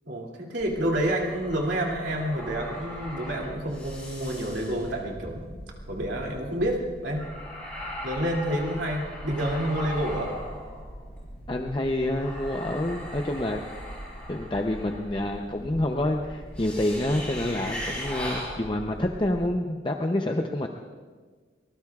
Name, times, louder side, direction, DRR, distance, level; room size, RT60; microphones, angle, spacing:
voice 1, 0.1-5.4 5.9-7.2 8.0-10.3, right 1 dB, 80° right, -2 dB, 2.7 m, -29 dB
sound 1, 0.6-19.4, equal, 5° left, 5.2 m, -39 dB
voice 2, 11.5-13.6 14.3-20.7, left 1 dB, 25° left, 3 dB, 0.6 m, -28 dB
23.5 x 20.0 x 2.4 m, 1.5 s
head